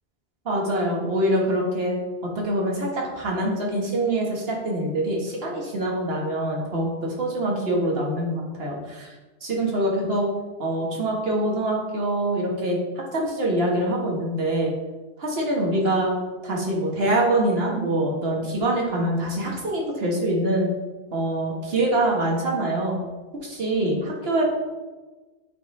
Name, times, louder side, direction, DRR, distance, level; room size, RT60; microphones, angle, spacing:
voice 1, 0.4-2.0 2.3-9.1 9.4-10.3 10.6-14.7 15.2-16.1 16.4-20.7 21.1-23.0 23.4-24.4, right 1 dB, 60° right, -1 dB, 1.6 m, -24 dB
8.3 x 3.7 x 4.2 m, 1.2 s
omnidirectional pair, 1.2 m